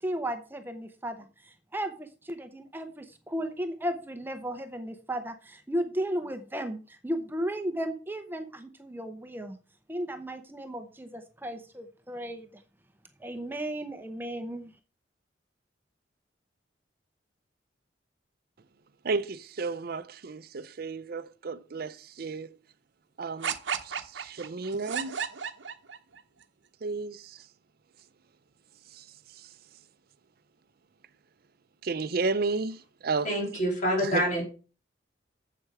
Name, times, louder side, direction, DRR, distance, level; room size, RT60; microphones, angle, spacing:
voice 1, 0.0-9.6 9.9-12.6 13.2-14.7, right 1 dB, 10° right, 0.7 m, -35 dB
voice 2, 19.0-22.5 23.2-23.5 23.8-25.2 26.8-27.2 31.8-32.8 33.0-33.3 34.0-34.2, right 4 dB, 55° right, 0.5 m, -32 dB
sound 1, 23.4-26.2, right 7 dB, 90° right, 0.8 m, -33 dB
voice 3, 33.2-34.4, equal, 45° left, 3.4 m, -27 dB
7.8 x 7.7 x 4.8 m
head